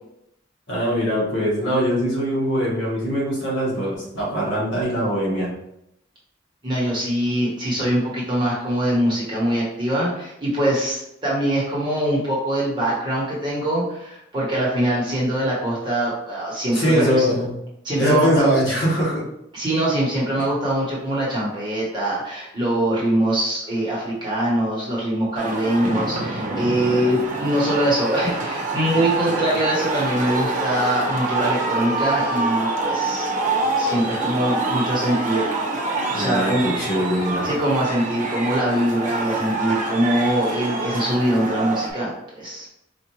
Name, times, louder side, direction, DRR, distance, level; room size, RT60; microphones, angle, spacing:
voice 1, 0.7-5.5 16.7-17.5 18.0-19.2 36.1-37.5, equal, 65° left, -5 dB, 1.3 m, -22 dB
voice 2, 6.6-17.2 17.8-18.5 19.5-33.3 33.8-35.8 36.1-36.7 37.4-42.7, right 1 dB, 25° right, -6 dB, 1.1 m, -23 dB
sound 1, 25.4-41.9, right 3 dB, 40° right, 0.6 m, -26 dB
4.4 x 2.5 x 3.0 m, 0.81 s
head